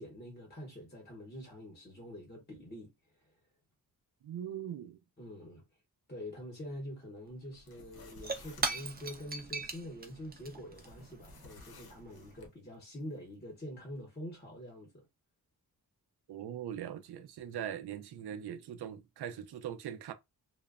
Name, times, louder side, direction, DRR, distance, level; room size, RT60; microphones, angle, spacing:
voice 1, 0.0-2.9 5.2-5.6 6.1-15.1, equal, 25° left, 0.9 m, -45 dB
voice 2, 4.2-5.0 16.3-20.1, right 10 dB, 80° right, 0.5 m, -41 dB
Shatter / Crushing, 7.3-7.4 7.6-12.5, right 3 dB, 25° right, 0.5 m, -40 dB
sound 1, 7.5-9.2 10.7-12.5, left 3 dB, 70° left, 0.7 m, -56 dB
3.0 x 2.1 x 2.4 m
wide cardioid pair, 140°, 38 cm